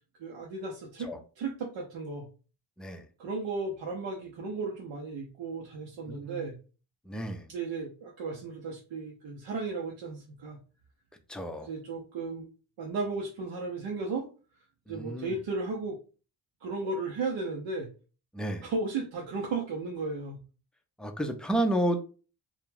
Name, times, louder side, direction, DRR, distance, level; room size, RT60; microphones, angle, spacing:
voice 1, 0.2-2.3 3.2-6.6 7.5-10.6 11.6-12.5 12.8-14.3 14.9-16.0 16.6-17.9 18.6-20.4, right 3 dB, 70° right, -1 dB, 0.7 m, -35 dB
voice 2, 6.1-6.5 7.1-7.5 11.3-11.7 14.9-15.4 18.3-18.7 21.0-22.0, right 1 dB, ahead, 5 dB, 0.5 m, -31 dB
2.4 x 2.2 x 3.1 m, 0.36 s
supercardioid pair, 50°, 46 cm